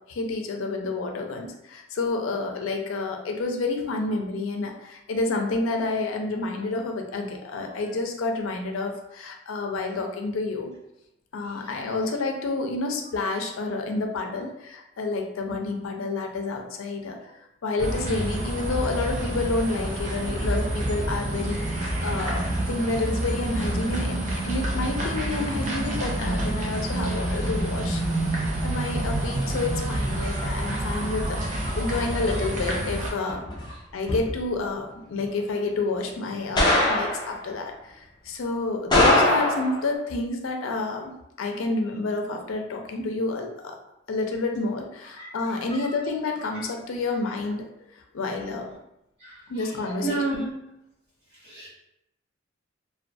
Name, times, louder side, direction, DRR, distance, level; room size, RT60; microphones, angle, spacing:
voice 1, 0.1-10.7 11.3-17.2 17.6-28.0 28.6-33.4 33.9-41.0 41.4-43.8 44.1-47.7 47.9-48.7 49.5-50.4, left 3 dB, 85° left, 3 dB, 0.4 m, -29 dB
voice 2, 11.4-11.9 31.3-32.5 33.3-33.4 33.7-33.8 45.1-45.9 46.4-46.7 49.2-50.5 51.3-51.7, right 2 dB, 60° right, -12 dB, 1.2 m, -35 dB
sound 1, 17.8-33.1, right 1 dB, 40° right, 0.5 m, -28 dB
sound 2, 33.3-33.7 34.1-34.3 36.6-37.3 38.9-39.8, left 1 dB, 20° left, 0.4 m, -21 dB
2.2 x 2.2 x 2.6 m, 0.84 s
head